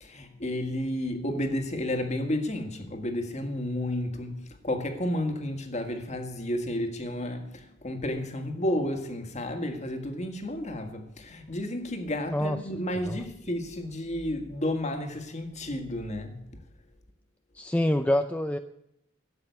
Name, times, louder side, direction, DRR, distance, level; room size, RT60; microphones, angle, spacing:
voice 1, 0.0-16.4, left 1 dB, 35° left, 1.8 m, -32 dB
voice 2, 17.5-18.6, left 1 dB, 5° left, 0.4 m, -26 dB
13.0 x 8.0 x 9.3 m
head